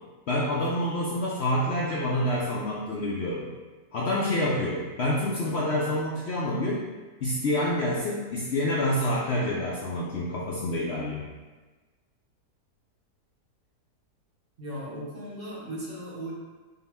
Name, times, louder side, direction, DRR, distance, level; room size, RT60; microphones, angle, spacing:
voice 1, 0.3-3.5 3.9-6.8 7.2-11.2, left 1 dB, 70° left, -5 dB, 0.6 m, -27 dB
voice 2, 14.6-16.3, right 1 dB, 40° right, -5 dB, 1.0 m, -37 dB
5.5 x 2.1 x 3.4 m, 1.3 s
omnidirectional pair, 1.7 m